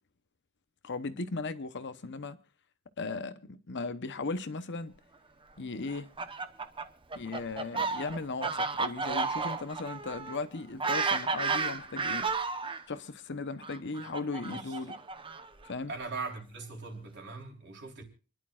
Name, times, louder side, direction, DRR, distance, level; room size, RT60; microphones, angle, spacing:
voice 1, 0.8-2.4 3.0-4.9 5.6-6.1 7.1-12.3 12.9-15.0 15.6-15.9, left 3 dB, 55° left, 0.9 m, -37 dB
Fowl, 5.9-12.8 13.6-15.7, right 4 dB, 25° right, 0.9 m, -32 dB
voice 2, 15.9-18.0, right 4 dB, 55° right, 3.6 m, -40 dB
29.0 x 11.0 x 2.4 m
head